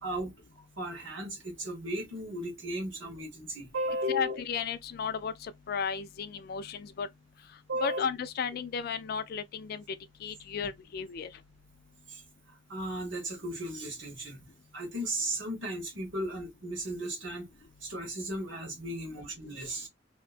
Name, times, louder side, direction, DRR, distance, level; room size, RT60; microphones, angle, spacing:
voice 1, 0.0-0.3 0.8-4.4 7.7-8.0 12.1-12.2 12.7-14.5 14.7-17.5 17.8-19.9, right 1 dB, 90° right, 1.4 m, -35 dB
voice 2, 4.1-7.1 7.5-11.4, left 6 dB, 55° left, 0.3 m, -34 dB
2.8 x 2.2 x 2.4 m
head